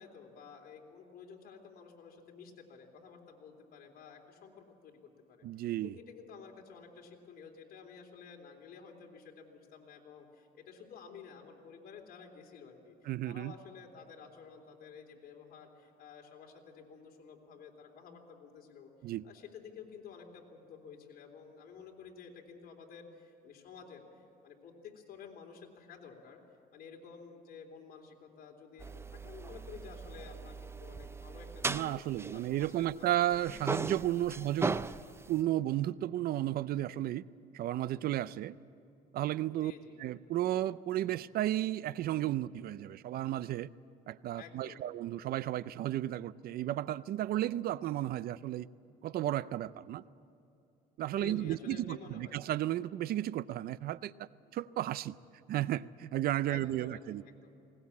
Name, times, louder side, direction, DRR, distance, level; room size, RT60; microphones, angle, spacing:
voice 1, 0.0-18.9 19.2-24.0 24.4-26.4 26.7-32.0 32.3-32.7 33.0-33.9 34.2-34.4 39.6-40.0 44.4-44.9 49.9-50.2 51.1-52.4 56.5-57.5, left 6 dB, 65° left, 2 dB, 3.4 m, -52 dB
voice 2, 5.4-5.9 13.1-13.5 19.0-19.3 31.7-34.7 35.3-37.2 37.5-38.6 39.1-39.7 40.0-43.7 44.1-48.7 49.0-50.0 51.0-54.3 54.5-55.2 55.5-57.2, right 13 dB, 65° right, 18 dB, 0.5 m, -33 dB
sound 1, 28.8-33.0 33.3-35.4, right 3 dB, 15° right, 0.5 m, -38 dB
20.5 x 19.0 x 8.5 m, 2.7 s
cardioid pair, 110°, 17 cm